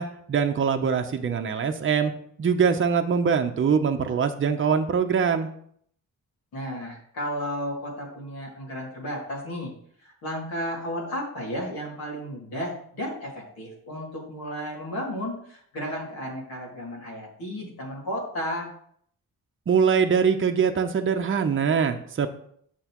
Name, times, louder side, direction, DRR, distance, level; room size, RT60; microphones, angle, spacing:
voice 1, 0.0-2.1 2.4-5.5 19.7-22.3, right 6 dB, 35° right, 6 dB, 0.7 m, -23 dB
voice 2, 6.5-9.7 10.0-18.7, equal, 85° left, -3 dB, 2.5 m, -33 dB
7.9 x 6.1 x 3.0 m, 0.65 s
cardioid pair, 90°, 35 cm